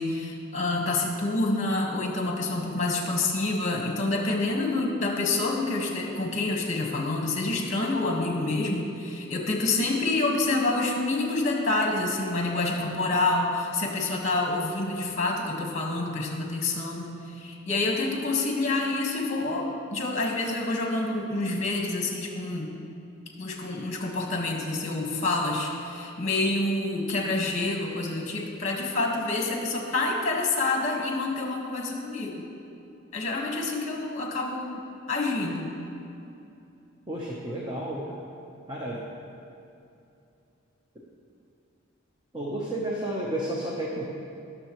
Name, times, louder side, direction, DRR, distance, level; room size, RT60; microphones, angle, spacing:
voice 1, 0.0-22.7 23.4-32.5 33.1-35.7, left 2 dB, 35° left, 0 dB, 1.6 m, -27 dB
voice 2, 37.1-38.2 38.7-39.0 42.3-44.1, right 1 dB, 20° right, -4 dB, 1.0 m, -31 dB
20.5 x 7.0 x 3.1 m, 2.7 s
head